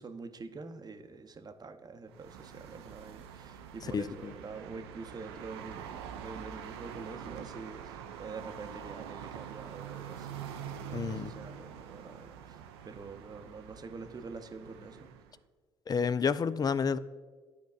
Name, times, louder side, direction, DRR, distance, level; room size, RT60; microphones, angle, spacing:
voice 1, 0.0-15.0, right 4 dB, 30° right, 0.7 m, -46 dB
sound 1, 2.1-15.4, right 8 dB, 85° right, 0.4 m, -45 dB
voice 2, 3.9-4.3 10.9-11.3 15.9-17.0, left 6 dB, 30° left, 0.4 m, -30 dB
12.5 x 4.6 x 2.4 m
hypercardioid pair, 50°, 13 cm